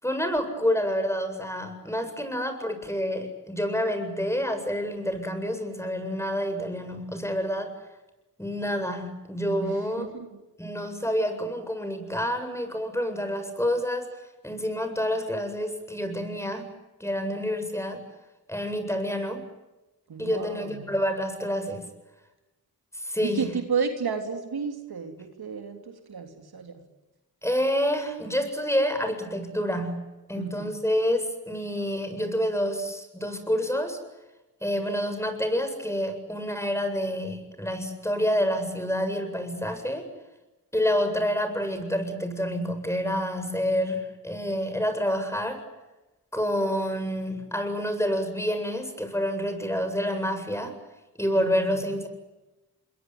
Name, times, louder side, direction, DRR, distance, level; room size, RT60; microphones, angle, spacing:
voice 1, 0.0-7.8 8.4-10.1 10.6-14.1 14.4-16.7 17.0-18.0 18.5-19.5 20.2-21.9 22.9-23.5 27.4-34.0 34.6-40.1 40.7-45.6 46.3-50.8 51.2-52.1, equal, 5° left, 8 dB, 7.8 m, -28 dB
voice 2, 9.6-10.3 20.1-20.9 23.2-26.8 30.4-30.7 51.4-51.8, right 5 dB, 75° right, 5 dB, 3.4 m, -32 dB
27.0 x 22.5 x 9.6 m, 1.0 s
cardioid pair, 40°, 38 cm